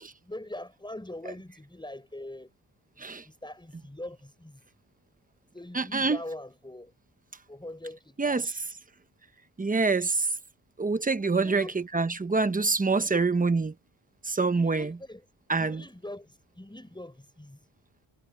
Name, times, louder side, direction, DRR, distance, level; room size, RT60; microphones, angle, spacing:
voice 1, 0.2-2.5 2.9-4.6 5.5-6.9 7.5-8.6 11.3-11.8 12.9-13.2 14.5-15.2 15.6-17.6, left 1 dB, 10° left, 6.4 m, -42 dB
voice 2, 5.7-6.2 8.2-8.5 9.6-10.3 10.8-13.7 14.3-14.9 15.5-15.8, right 4 dB, 15° right, 0.8 m, -26 dB
wide cardioid pair, 155°, 49 cm